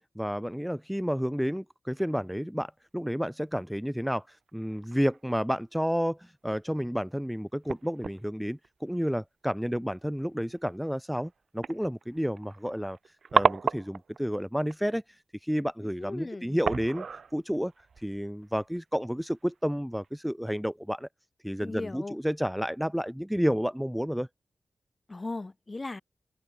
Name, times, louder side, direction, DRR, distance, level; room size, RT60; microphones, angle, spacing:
voice 1, 0.0-13.0 13.3-21.1 21.4-24.3, equal, ahead, 3.1 m, -31 dB
sound 1, 1.9-2.1 4.5-5.6 6.0-6.1 6.6-6.7 7.6-8.3 8.6-9.0 9.9-10.2 10.5-10.7 11.2-11.3 11.6-14.2 14.6-14.9 16.1-16.3 16.6-18.8 19.3-19.6 20.0-20.1, right 5 dB, 65° right, 3.5 m, -32 dB
voice 2, 16.0-16.6 21.6-22.2 25.1-26.0, left 2 dB, 30° left, 6.3 m, -37 dB
wide cardioid pair, 100°, 0 cm